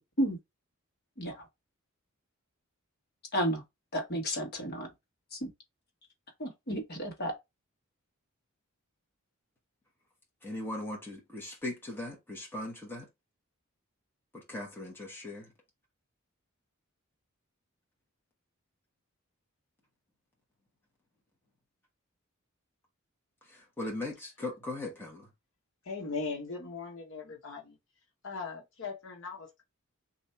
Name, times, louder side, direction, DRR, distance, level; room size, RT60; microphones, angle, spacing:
voice 1, 3.3-3.6 3.9-4.9 5.3-5.5 6.4-7.3, equal, 50° left, 1.2 m, -32 dB
voice 2, 10.4-13.1 14.3-15.5 23.5-25.3, left 2 dB, 10° left, 1.2 m, -39 dB
voice 3, 25.8-27.8 28.2-29.6, left 4 dB, 65° left, 1.0 m, -39 dB
3.3 x 2.6 x 4.2 m
head